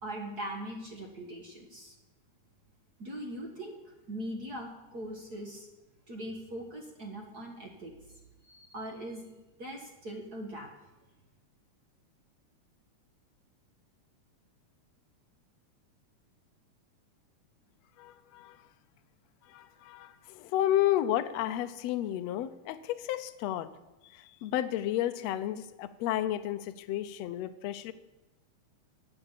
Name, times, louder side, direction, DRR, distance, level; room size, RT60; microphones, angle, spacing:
voice 1, 0.0-1.9 3.0-5.7 6.1-7.9 8.4-9.2 9.6-10.7, right 1 dB, 45° right, 2 dB, 1.4 m, -41 dB
voice 2, 18.0-18.6 19.4-23.7 24.0-27.9, left 12 dB, 75° left, 10 dB, 1.7 m, -32 dB
13.0 x 8.0 x 7.4 m, 1.0 s
omnidirectional pair, 3.6 m